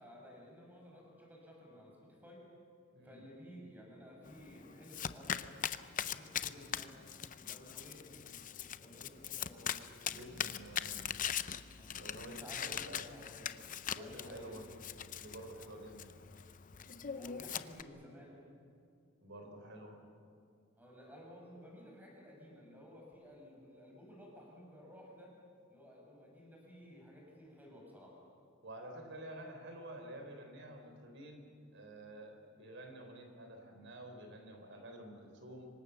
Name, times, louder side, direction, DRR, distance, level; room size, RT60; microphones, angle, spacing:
voice 1, 0.0-2.4 3.0-5.5 6.0-7.0 7.3-8.0 8.8-9.9 11.7-13.5 14.0-14.7 16.9-18.4 20.8-25.3 25.7-28.2, equal, 10° right, -2 dB, 6.3 m, -54 dB
Domestic sounds home sounds, 4.3-17.8, left 9 dB, 40° left, 0.7 m, -42 dB
voice 2, 10.1-11.2 12.0-13.1 13.9-14.6 15.2-16.1 19.2-20.0 28.6-35.7, right 1 dB, 60° right, 4 dB, 4.1 m, -50 dB
26.5 x 24.0 x 7.0 m, 2.4 s
head